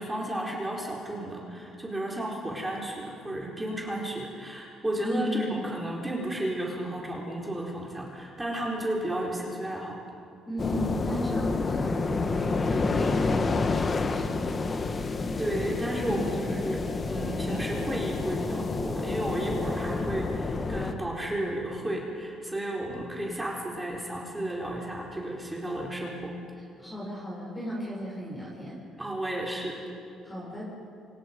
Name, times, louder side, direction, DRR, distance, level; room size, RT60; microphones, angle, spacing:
voice 1, 0.0-10.0 15.4-26.3 28.9-29.8, right 1 dB, 10° right, -3 dB, 4.4 m, -33 dB
voice 2, 5.0-5.6 10.5-14.7 16.0-16.4 26.8-28.8 30.2-30.7, equal, 15° left, -5 dB, 7.0 m, -35 dB
sound 1, 10.6-20.9, left 3 dB, 35° left, 1.5 m, -29 dB
27.5 x 26.5 x 5.4 m, 2.6 s
cardioid pair, 105°, 0 cm